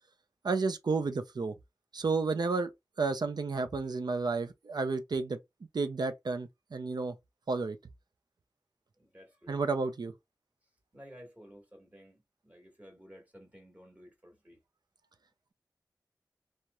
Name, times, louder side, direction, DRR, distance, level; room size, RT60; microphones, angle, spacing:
voice 1, 0.4-1.5 1.9-2.7 3.0-5.4 5.7-7.1 7.5-7.8 9.5-10.1, right 4 dB, 75° right, 0.4 m, -31 dB
voice 2, 9.0-9.6 10.9-14.6, equal, 20° right, 1.4 m, -54 dB
2.9 x 2.1 x 2.3 m
wide cardioid pair, 50°, 7 cm